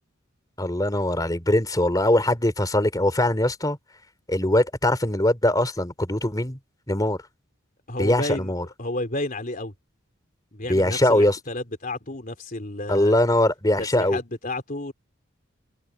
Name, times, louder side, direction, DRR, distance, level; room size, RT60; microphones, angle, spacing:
voice 1, 0.6-3.8 4.3-6.6 6.9-7.2 8.0-8.6 10.7-11.4 12.9-14.2, left 1 dB, 20° left, 3.1 m, -21 dB
voice 2, 7.9-8.5 8.8-9.7 10.5-13.2 13.8-14.9, left 2 dB, 40° left, 3.5 m, -31 dB
head